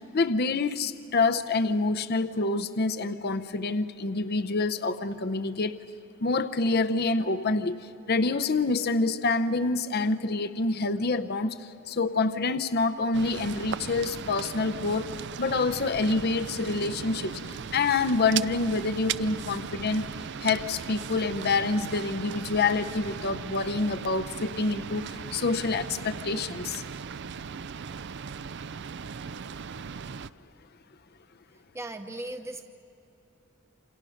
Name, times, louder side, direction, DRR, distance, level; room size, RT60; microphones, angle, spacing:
voice 1, 0.0-5.8 6.2-15.1 15.4-20.0 20.4-26.8, left 3 dB, 50° left, 10 dB, 0.7 m, -27 dB
sound 1, 13.1-30.3, right 6 dB, 55° right, 0.5 m, -38 dB
voice 2, 31.5-32.6, right 1 dB, 15° right, 6 dB, 0.9 m, -38 dB
28.5 x 27.0 x 6.5 m, 2.9 s
head